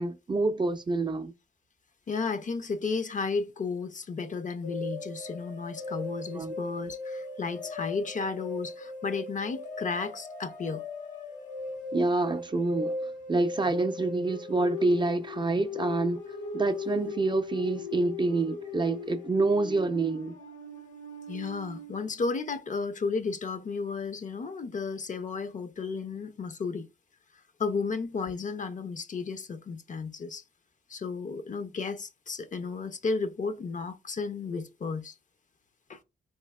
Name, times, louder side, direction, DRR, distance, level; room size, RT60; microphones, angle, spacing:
voice 1, 0.0-1.3 6.4-6.5 11.9-13.0 13.3-16.2 16.5-20.3, right 3 dB, 25° right, 0.4 m, -27 dB
voice 2, 2.1-10.8 21.3-26.9 27.6-30.4 30.9-35.1 35.9-36.0, left 4 dB, 45° left, 0.5 m, -33 dB
sound 1, 4.6-22.0, left 3 dB, 85° left, 1.0 m, -38 dB
4.3 x 2.7 x 2.2 m
cardioid pair, 75°, 19 cm